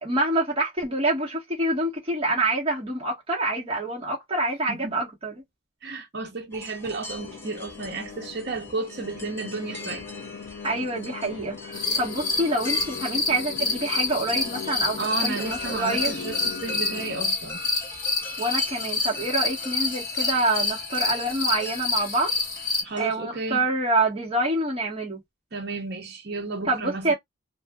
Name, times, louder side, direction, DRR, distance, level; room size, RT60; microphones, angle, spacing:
voice 1, 0.0-5.4 10.6-16.2 18.4-22.3 23.0-25.2 26.7-27.1, right 2 dB, 25° right, 1.4 m, -26 dB
voice 2, 4.7-5.0 5.8-10.0 15.0-17.6 22.8-23.6 25.5-27.1, right 3 dB, 55° right, 0.8 m, -33 dB
sound 1, 6.5-23.1, left 2 dB, 10° left, 0.5 m, -40 dB
sound 2, 7.2-17.2, left 5 dB, 65° left, 0.5 m, -40 dB
sound 3, 11.7-22.8, left 3 dB, 45° left, 1.3 m, -28 dB
2.5 x 2.5 x 2.3 m
head